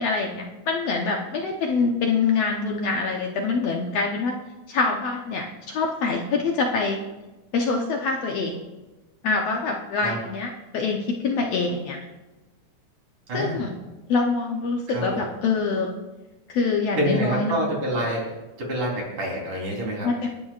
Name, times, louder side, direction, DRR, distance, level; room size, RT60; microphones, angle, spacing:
voice 1, 0.0-4.3 4.7-7.0 7.5-8.6 9.2-12.0 13.3-13.7 14.1-15.9 16.5-17.6 20.0-20.4, left 4 dB, 65° left, 1 dB, 1.8 m, -25 dB
voice 2, 13.3-13.6 14.9-15.2 17.0-18.3 18.6-20.1, equal, 65° right, -2 dB, 5.3 m, -27 dB
29.0 x 11.0 x 2.5 m, 1.1 s
omnidirectional pair, 3.7 m